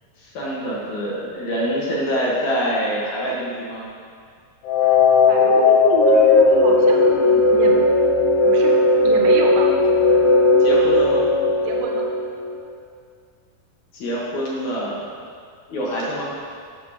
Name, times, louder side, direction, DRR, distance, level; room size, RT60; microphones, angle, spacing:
voice 1, 0.2-3.9 10.6-11.2 13.9-15.0 15.7-16.3, equal, 65° left, -5 dB, 2.5 m, -25 dB
sound 1, 4.7-12.6, left 3 dB, 85° left, 2.6 m, -16 dB
voice 2, 5.3-7.9 8.4-10.0 11.6-12.1, right 5 dB, 75° right, 0 dB, 2.3 m, -28 dB
12.0 x 6.8 x 2.9 m, 2.1 s
omnidirectional pair, 3.9 m